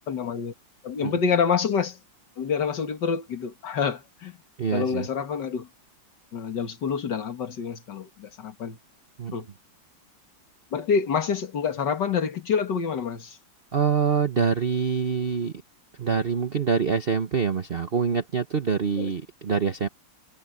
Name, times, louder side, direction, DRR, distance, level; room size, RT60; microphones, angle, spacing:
voice 1, 0.1-0.5 0.8-2.0 2.4-4.4 4.7-5.7 6.3-8.8 9.3-9.5 10.7-13.4 19.0-19.1, left 6 dB, 60° left, 2.5 m, -27 dB
voice 2, 4.6-5.1 9.2-9.3 13.7-15.5 16.0-19.9, right 6 dB, 40° right, 0.9 m, -25 dB
omnidirectional pair, 2.1 m